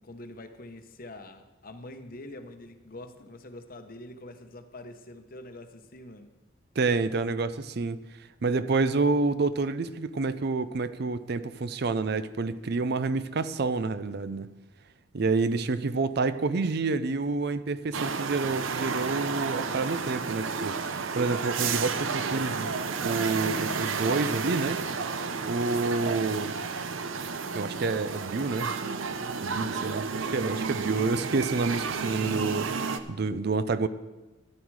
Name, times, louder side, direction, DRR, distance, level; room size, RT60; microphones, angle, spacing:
voice 1, 0.0-6.4 29.8-31.1, left 1 dB, 45° left, 1.0 m, -46 dB
voice 2, 6.8-8.0 8.4-14.5 15.1-22.7 23.0-24.8 25.4-26.5 27.5-28.7 29.4-33.9, right 3 dB, 55° right, 0.5 m, -28 dB
sound 1, 17.9-33.0, right 5 dB, 85° right, 0.7 m, -31 dB
13.0 x 11.0 x 4.8 m
head